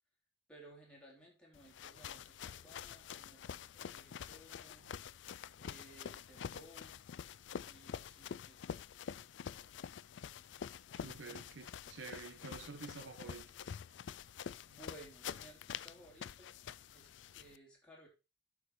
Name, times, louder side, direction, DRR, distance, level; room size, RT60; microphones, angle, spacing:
voice 1, 0.5-5.0 5.6-7.0 7.6-8.8 14.6-16.6 16.9-18.1, right 1 dB, 5° left, 3.2 m, -59 dB
sound 1, 1.5-17.6, left 8 dB, 65° left, 0.4 m, -47 dB
voice 2, 10.9-13.4, right 4 dB, 70° right, 1.2 m, -49 dB
11.5 x 4.8 x 4.2 m
head